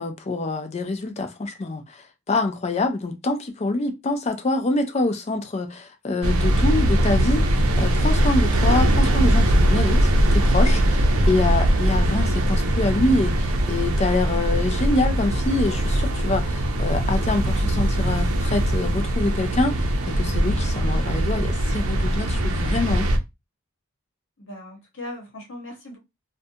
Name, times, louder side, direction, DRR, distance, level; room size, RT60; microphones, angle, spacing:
voice 1, 0.0-2.0 2.3-23.1, left 2 dB, 30° left, 0.4 m, -25 dB
sound 1, 6.2-23.2, right 1 dB, 85° right, 0.5 m, -21 dB
voice 2, 24.4-26.0, left 1 dB, 65° left, 1.0 m, -38 dB
2.5 x 2.2 x 2.6 m
head